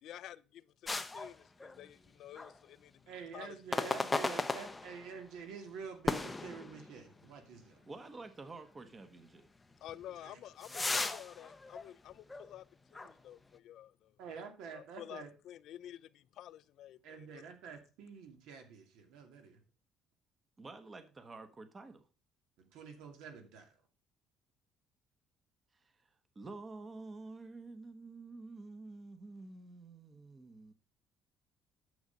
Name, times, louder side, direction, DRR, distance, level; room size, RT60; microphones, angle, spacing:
voice 1, 0.0-4.3 9.8-14.2 14.7-17.5, left 12 dB, 55° left, 0.5 m, -51 dB
sound 1, 0.9-2.1 2.4-2.6 3.7-5.2 6.1-7.2 7.7-7.8 8.4-8.5 9.9-12.6 12.9-13.1, left 3 dB, 10° left, 0.6 m, -37 dB
voice 2, 3.1-7.8 10.2-10.4 14.2-15.3 17.0-19.6 22.6-23.7, right 6 dB, 75° right, 2.5 m, -48 dB
voice 3, 7.8-9.5 20.6-22.0 25.8-25.9 26.3-30.7, right 3 dB, 20° right, 1.0 m, -49 dB
9.5 x 6.6 x 5.2 m
cardioid pair, 170°, 0 cm